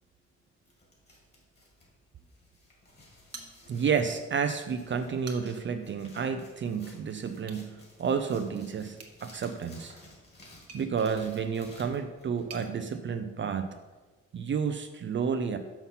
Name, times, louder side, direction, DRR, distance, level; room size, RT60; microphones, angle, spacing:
sound 1, 0.6-12.7, left 1 dB, 35° left, 2.5 m, -56 dB
sound 2, 3.3-4.1 4.4-4.5 5.0-5.8 7.4-7.7 8.9-12.7, right 5 dB, 55° right, 1.2 m, -50 dB
voice 1, 3.7-9.9 10.7-13.7 14.3-15.6, right 6 dB, 40° right, 7 dB, 0.5 m, -31 dB
5.7 x 5.7 x 5.7 m, 1.3 s
cardioid pair, 90°, 30 cm